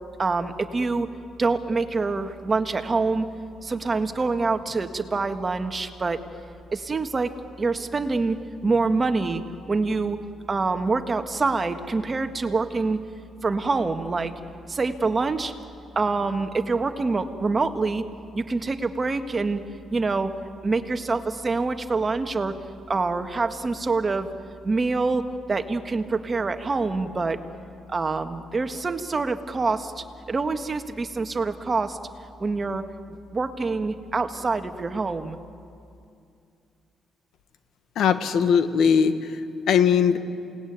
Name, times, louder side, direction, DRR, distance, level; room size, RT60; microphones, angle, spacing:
voice 1, 0.2-1.1 1.4-3.3 3.6-6.2 6.7-7.3 7.6-8.4 8.6-10.2 10.5-13.0 13.4-14.3 14.7-15.5 15.9-18.0 18.3-19.6 19.9-20.3 20.6-22.5 22.9-24.3 24.6-25.2 25.5-27.4 27.9-32.0 32.4-32.9 33.3-35.4, right 3 dB, 30° right, 7 dB, 1.7 m, -25 dB
voice 2, 37.9-39.4 39.7-40.2, left 7 dB, 75° left, 9 dB, 1.6 m, -20 dB
28.5 x 19.0 x 9.5 m, 2.5 s
cardioid pair, 90°, 0 cm